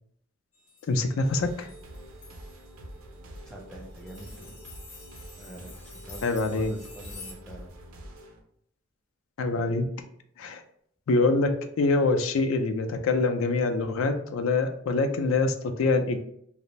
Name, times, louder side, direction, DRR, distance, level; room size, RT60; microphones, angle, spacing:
sound 1, 0.5-2.7 3.3-3.5 3.9-7.3, left 3 dB, 35° left, 0.7 m, -49 dB
voice 1, 0.9-1.7 6.2-6.7 9.4-9.8 10.4-10.6 11.1-16.2, left 3 dB, 75° left, 7 dB, 0.4 m, -25 dB
sound 2, 1.2-8.4, right 1 dB, 80° right, 0.5 m, -45 dB
voice 2, 3.5-4.6 5.4-7.7, equal, 5° left, 0 dB, 0.3 m, -44 dB
2.5 x 2.0 x 3.0 m, 0.68 s
head